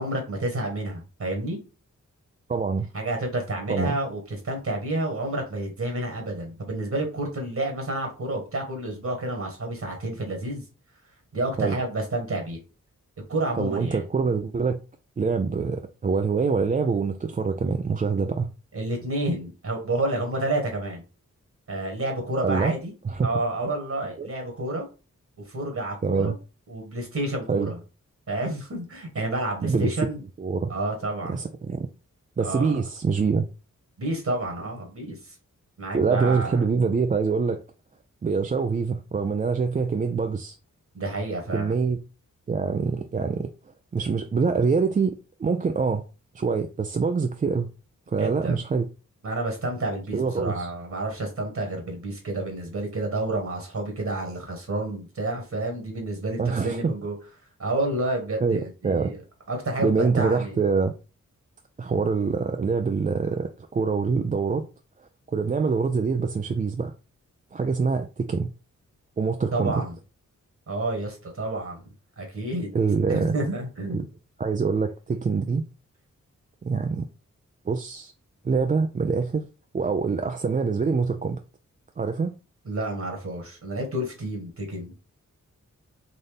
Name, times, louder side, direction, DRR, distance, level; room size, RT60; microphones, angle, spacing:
voice 1, 0.0-1.6 2.9-10.6 11.3-12.6 13.3-14.0 18.7-21.0 21.7-22.9 23.2-24.9 25.5-26.3 26.7-27.8 28.3-30.2 30.7-31.3 32.4-32.7 34.0-35.3 35.8-36.6 40.9-41.7 48.2-48.6 49.2-57.1 57.6-59.2 59.5-60.5 69.5-69.9 70.7-71.8 72.2-72.7 73.1-74.0 82.6-85.0, right 2 dB, 55° right, 1.4 m, -29 dB
voice 2, 2.5-2.9 3.7-3.9 11.6-11.8 13.6-14.8 15.2-18.5 22.4-22.7 23.0-23.3 24.2-24.3 26.0-26.4 27.5-27.7 29.6-29.9 30.4-30.7 31.2-31.9 32.4-33.5 35.9-37.6 38.2-40.5 41.5-42.0 42.5-43.5 43.9-46.0 46.3-47.7 48.1-48.9 50.1-50.7 56.4-56.9 58.4-59.1 59.8-60.9 61.8-64.7 65.3-66.9 67.5-68.5 69.2-69.8 72.7-73.3 73.9-74.0 74.4-75.6 76.6-77.1 77.7-78.1 78.4-79.4 79.7-81.4 82.0-82.4, right 5 dB, 25° right, 0.4 m, -25 dB
4.0 x 2.6 x 3.4 m
cardioid pair, 50°, 32 cm